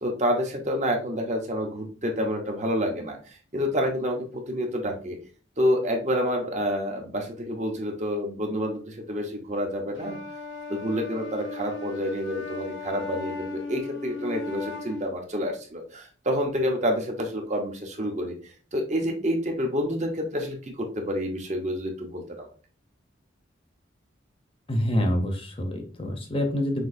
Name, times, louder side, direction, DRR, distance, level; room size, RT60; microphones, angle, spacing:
voice 1, 0.0-5.2 5.6-10.2 10.7-22.5, equal, 35° right, 2 dB, 0.9 m, -28 dB
Wind instrument woodwind instrument, 10.0-15.1, left 3 dB, 90° left, 1.5 m, -37 dB
voice 2, 24.7-26.9, left 1 dB, 30° left, 3 dB, 0.7 m, -26 dB
6.1 x 2.7 x 2.6 m, 0.38 s
head